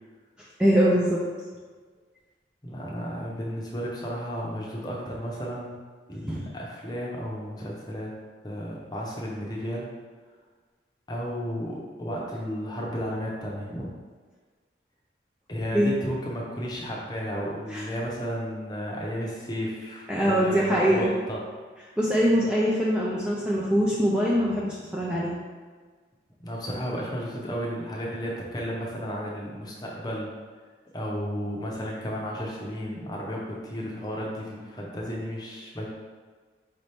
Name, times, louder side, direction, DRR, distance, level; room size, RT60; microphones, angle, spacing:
voice 1, 0.6-1.3 6.3-6.5 15.7-15.9 17.7-17.8 20.1-21.1 22.0-25.3, equal, 5° right, -6 dB, 0.3 m, -23 dB
voice 2, 2.6-5.8 6.1-8.1 8.4-9.9 11.1-13.9 15.5-21.4 26.4-30.3 30.9-35.9, equal, 20° left, -3 dB, 0.7 m, -33 dB
5.0 x 2.8 x 3.3 m, 1.5 s
head